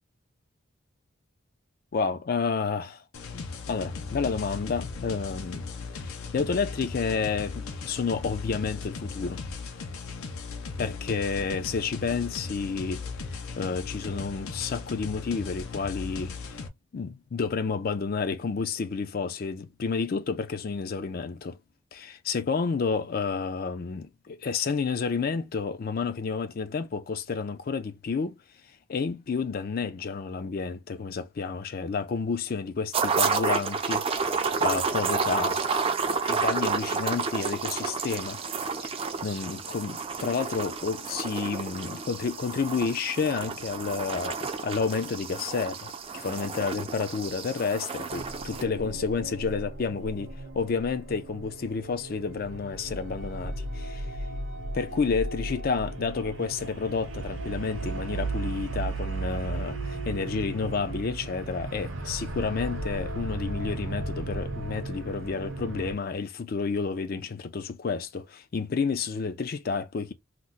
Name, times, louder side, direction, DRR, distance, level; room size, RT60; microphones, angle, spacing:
voice 1, 1.9-3.0 3.3-5.6 5.9-9.4 10.8-13.0 13.6-16.6 16.9-21.6 21.9-28.4 28.9-35.8 36.2-38.4 38.8-38.9 39.2-54.1 54.7-70.1, left 5 dB, 45° left, 0.4 m, -30 dB
sound 1, 3.1-16.7, left 4 dB, 80° left, 0.6 m, -37 dB
sound 2, 32.9-48.6, right 5 dB, 25° right, 0.4 m, -30 dB
sound 3, 48.1-65.9, right 2 dB, 60° right, 0.8 m, -35 dB
2.9 x 2.1 x 3.6 m
head